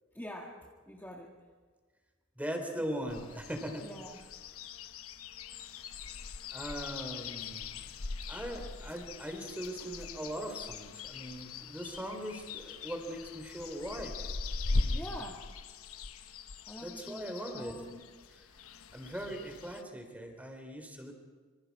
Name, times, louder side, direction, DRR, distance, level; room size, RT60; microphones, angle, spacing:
voice 1, 0.1-1.3 2.8-2.9 3.8-4.2 14.9-15.5 16.7-18.0, equal, 10° left, -2 dB, 1.9 m, -45 dB
voice 2, 2.4-3.8 6.5-7.7 8.3-14.2 14.7-15.1 16.8-17.8 18.9-21.1, equal, 5° right, 4 dB, 3.8 m, -40 dB
sound 1, 3.1-19.8, left 3 dB, 80° left, 1.0 m, -40 dB
26.5 x 25.5 x 4.8 m, 1.5 s
head